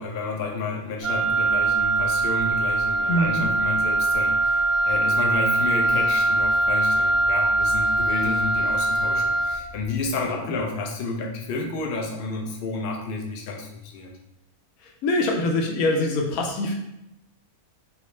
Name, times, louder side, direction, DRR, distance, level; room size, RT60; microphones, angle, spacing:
voice 1, 0.0-14.1, left 3 dB, 60° left, 1 dB, 0.6 m, -31 dB
Wind instrument woodwind instrument, 1.0-9.7, right 2 dB, 70° right, 0.6 m, -22 dB
voice 2, 3.1-3.5 15.0-16.7, left 1 dB, 85° left, 1 dB, 1.1 m, -23 dB
3.3 x 2.8 x 3.1 m, 0.85 s
omnidirectional pair, 1.5 m